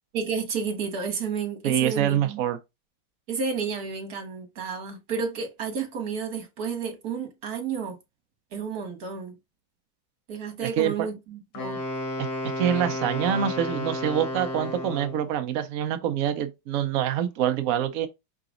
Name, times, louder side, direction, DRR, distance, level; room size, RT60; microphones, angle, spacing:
voice 1, 0.1-2.4 3.3-8.0 8.5-9.4 10.3-11.8, right 5 dB, 50° right, 1.7 m, -31 dB
voice 2, 1.6-2.6 10.6-11.1 12.2-12.3 12.6-18.1, right 10 dB, 80° right, 0.7 m, -25 dB
Wind instrument woodwind instrument, 11.5-15.3, left 1 dB, 65° left, 2.0 m, -32 dB
4.9 x 3.8 x 2.5 m
omnidirectional pair, 2.2 m